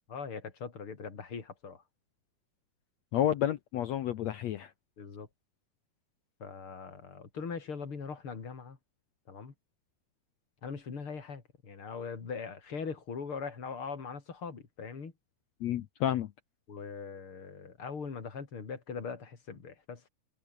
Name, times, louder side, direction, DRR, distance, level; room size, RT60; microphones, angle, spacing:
voice 1, 0.1-1.8 5.0-5.3 6.4-8.8 9.3-9.5 10.6-15.1 16.7-20.1, left 5 dB, 35° left, 3.9 m, -41 dB
voice 2, 3.1-4.7 15.6-16.3, left 11 dB, 75° left, 1.6 m, -30 dB
omnidirectional pair, 4.4 m